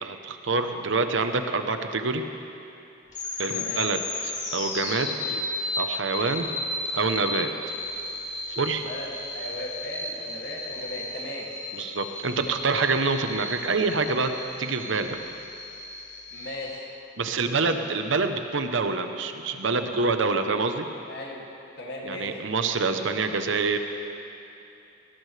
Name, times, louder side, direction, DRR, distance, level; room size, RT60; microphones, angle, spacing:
voice 1, 0.0-2.3 3.4-5.4 5.8-6.5 6.9-7.5 8.5-8.8 11.8-14.3 14.6-15.2 17.2-20.9 22.0-23.8, right 4 dB, 75° right, 7 dB, 0.9 m, -26 dB
sound 1, 3.1-16.8, left 2 dB, 40° left, 2.4 m, -34 dB
voice 2, 3.5-3.9 8.8-11.5 16.3-16.9 21.1-21.5 21.8-22.4, left 1 dB, 55° left, -2 dB, 2.4 m, -37 dB
19.0 x 18.5 x 3.4 m, 2.8 s
head